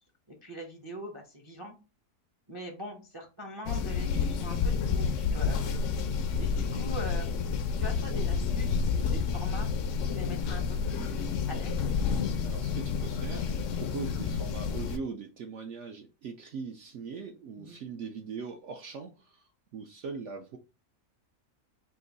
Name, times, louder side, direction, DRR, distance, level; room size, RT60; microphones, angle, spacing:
voice 1, 0.3-1.7 2.5-5.8 6.4-7.3 7.7-9.7 10.1-11.9 17.6-17.8, left 1 dB, 30° right, 0.4 m, -42 dB
sound 1, 3.7-15.0, left 5 dB, 65° left, 0.8 m, -30 dB
voice 2, 12.4-20.6, right 5 dB, 70° right, 0.7 m, -41 dB
3.8 x 2.6 x 3.9 m
omnidirectional pair, 1.6 m